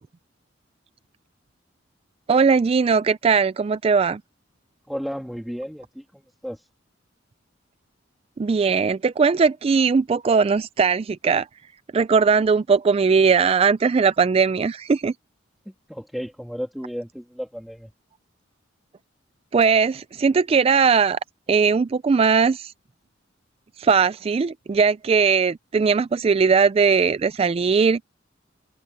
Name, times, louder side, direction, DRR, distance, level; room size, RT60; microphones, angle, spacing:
voice 1, 2.3-4.2 8.4-11.5 11.9-15.1 19.5-21.2 21.5-22.7 23.8-28.0, right 5 dB, 30° right, 0.3 m, -19 dB
voice 2, 4.9-6.7 15.7-17.9, equal, ahead, 2.4 m, -33 dB
head